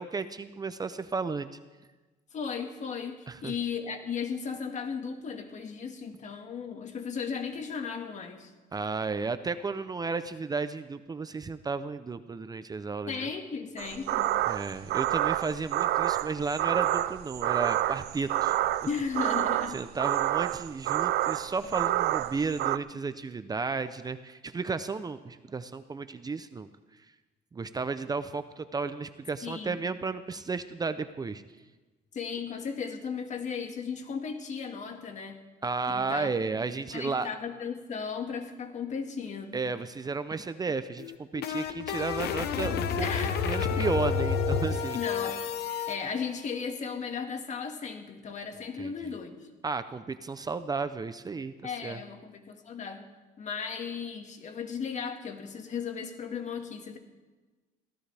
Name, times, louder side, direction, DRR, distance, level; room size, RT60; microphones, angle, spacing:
voice 1, 0.0-1.5 3.3-3.5 8.7-13.2 14.5-18.6 19.7-26.7 27.5-31.4 35.6-37.3 39.5-45.0 48.8-48.9 49.6-52.0, right 4 dB, 25° right, 11 dB, 0.6 m, -33 dB
voice 2, 2.3-8.5 13.1-14.3 18.9-19.8 29.4-29.8 32.1-35.4 35.9-36.6 36.9-39.6 43.0-43.4 44.9-45.4 45.9-49.4 51.6-53.1 53.4-57.0, left 6 dB, 45° left, 5 dB, 1.9 m, -36 dB
sound 1, 13.8-22.8, right 14 dB, 75° right, 0.5 m, -28 dB
sound 2, 41.0-45.9, left 6 dB, 70° left, 1.0 m, -30 dB
22.5 x 16.5 x 3.4 m, 1.2 s
cardioid pair, 110°, 17 cm